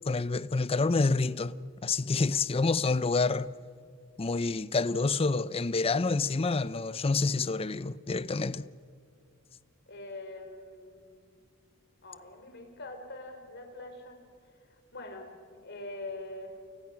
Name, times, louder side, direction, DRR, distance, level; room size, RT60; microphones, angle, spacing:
voice 1, 0.1-3.5 4.2-8.6, left 3 dB, 25° left, 0.5 m, -28 dB
voice 2, 9.9-11.3 12.0-14.2 14.9-16.6, left 2 dB, 55° left, 3.9 m, -43 dB
29.0 x 29.0 x 6.0 m
head